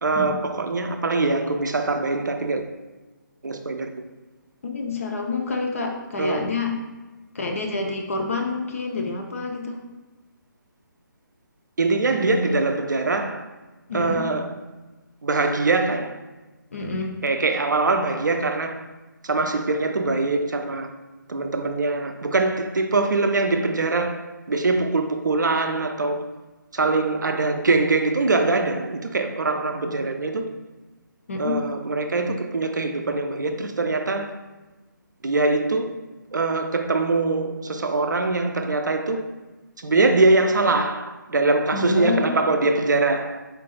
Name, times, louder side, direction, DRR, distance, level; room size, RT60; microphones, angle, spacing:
voice 1, 0.0-2.6 3.4-3.9 6.2-6.5 11.8-13.5 13.9-14.5 15.2-16.2 17.2-18.8 19.2-20.9 21.3-26.2 26.7-30.5 31.4-34.4 35.2-36.0 36.3-39.2 39.8-43.5, right 3 dB, 60° right, 0.4 m, -23 dB
voice 2, 4.6-6.7 7.3-9.8 13.9-14.3 16.7-17.1 31.3-31.6 41.7-42.6, left 3 dB, 45° left, 0.4 m, -28 dB
3.8 x 2.3 x 3.9 m
figure-of-eight pair, 145°, 11 cm